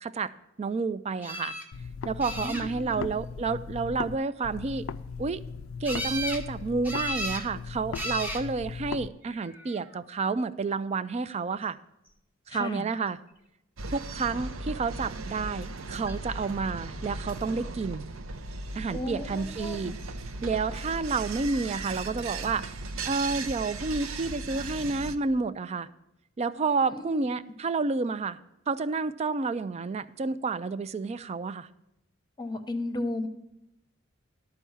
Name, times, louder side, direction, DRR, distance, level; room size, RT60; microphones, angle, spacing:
voice 1, 0.0-0.3 0.6-1.5 2.0-4.9 5.2-5.4 5.8-11.8 12.5-13.2 13.9-18.0 18.8-19.9 20.4-22.7 23.0-25.9 26.4-28.4 28.7-31.7, right 4 dB, 30° right, 15 dB, 0.3 m, -30 dB
sound 1, 1.2-1.7 2.2-2.9 5.8-6.4 6.8-7.5 7.9-8.4 9.4-9.8 16.1-16.2 16.5-16.6, equal, 10° right, 0.8 m, -34 dB
sound 2, 1.7-4.2 4.4-9.1, left 5 dB, 70° left, 0.4 m, -38 dB
voice 2, 2.4-3.0 12.5-12.9 18.9-19.9 26.9-27.3 32.4-33.3, left 2 dB, 20° left, 7 dB, 0.8 m, -34 dB
sound 3, 13.8-25.2, right 3 dB, 70° right, 0.6 m, -37 dB
12.5 x 4.6 x 7.1 m, 0.86 s
head